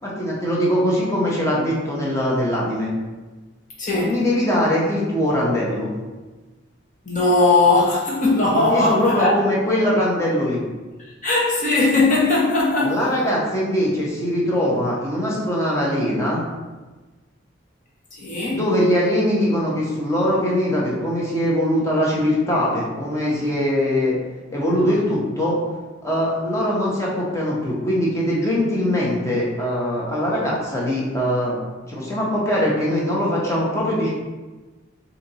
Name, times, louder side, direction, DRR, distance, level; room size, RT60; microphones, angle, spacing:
voice 1, 0.0-2.9 4.0-5.9 8.5-10.6 12.8-16.4 18.5-24.2 24.5-25.6 26.0-31.6 31.9-34.1, equal, 15° left, -5 dB, 1.0 m, -21 dB
voice 2, 3.8-4.1 7.0-9.3 11.2-12.9 18.1-18.6, left 2 dB, 40° left, -5 dB, 1.2 m, -18 dB
4.1 x 2.9 x 4.1 m, 1.2 s
head